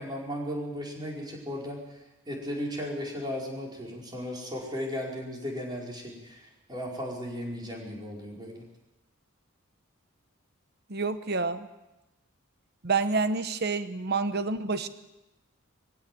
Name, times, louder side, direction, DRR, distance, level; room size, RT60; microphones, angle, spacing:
voice 1, 0.0-2.0 2.3-8.6, equal, 20° right, -2 dB, 5.1 m, -36 dB
voice 2, 10.9-11.7 12.8-14.9, right 4 dB, 50° right, 10 dB, 1.0 m, -28 dB
22.0 x 16.0 x 7.8 m, 1.0 s
head